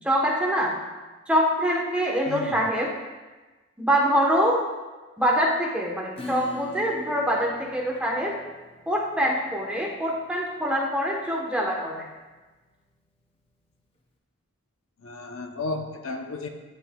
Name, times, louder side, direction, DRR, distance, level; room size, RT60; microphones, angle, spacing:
voice 1, 0.0-0.7 1.3-2.9 3.8-4.6 5.2-8.4 8.9-12.1, equal, 5° right, -3 dB, 0.9 m, -24 dB
voice 2, 2.3-2.7 15.0-16.5, left 3 dB, 70° left, 4 dB, 0.6 m, -33 dB
Acoustic guitar / Strum, 6.2-13.4, left 3 dB, 25° left, 0.7 m, -44 dB
13.5 x 5.5 x 2.2 m, 1.2 s
head